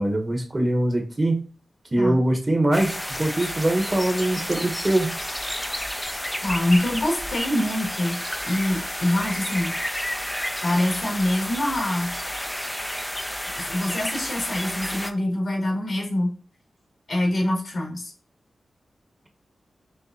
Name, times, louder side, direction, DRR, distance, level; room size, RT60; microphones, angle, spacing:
voice 1, 0.0-1.4 1.9-5.1, right 1 dB, 35° right, 3 dB, 1.2 m, -23 dB
sound 1, 2.7-15.1, equal, 10° left, 0.5 m, -31 dB
voice 2, 6.4-9.8 10.6-12.2 13.6-16.3 17.1-18.1, left 1 dB, 70° left, -1 dB, 2.2 m, -25 dB
6.5 x 2.5 x 2.7 m, 0.39 s
cardioid pair, 45°, 0 cm